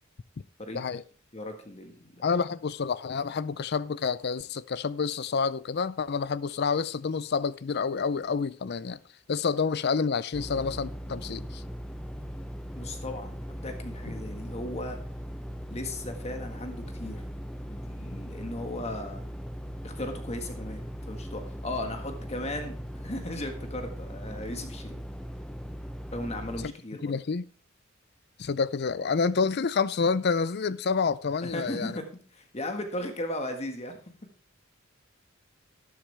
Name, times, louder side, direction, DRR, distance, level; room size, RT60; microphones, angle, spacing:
voice 1, 1.3-2.1 12.7-15.0 15.7-17.2 17.7-19.2 19.8-25.0 26.1-27.2 31.4-34.0, left 1 dB, 30° left, 1.6 m, -36 dB
voice 2, 2.2-9.0 9.3-11.6 26.6-26.7 27.0-27.5 28.4-32.0, left 5 dB, 50° left, 0.5 m, -28 dB
sound 1, 10.3-26.7, equal, 5° left, 0.7 m, -39 dB
12.5 x 10.5 x 3.4 m
head